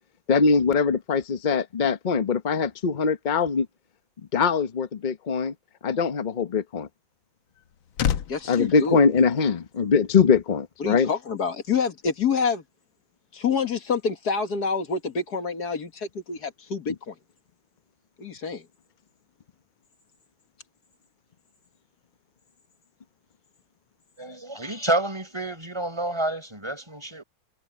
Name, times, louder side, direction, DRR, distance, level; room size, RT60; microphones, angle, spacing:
voice 1, 0.3-3.7 4.3-5.5 5.8-6.9 8.5-11.1, left 5 dB, 35° left, 0.8 m, -22 dB
sound 1, 7.2-9.9 10.2-10.5, left 9 dB, 80° left, 1.7 m, -31 dB
voice 2, 8.3-9.0 10.8-12.6 13.3-17.1 18.2-18.6, left 5 dB, 50° left, 2.1 m, -27 dB
voice 3, 24.2-27.2, right 1 dB, 15° right, 5.3 m, -29 dB
omnidirectional pair, 2.2 m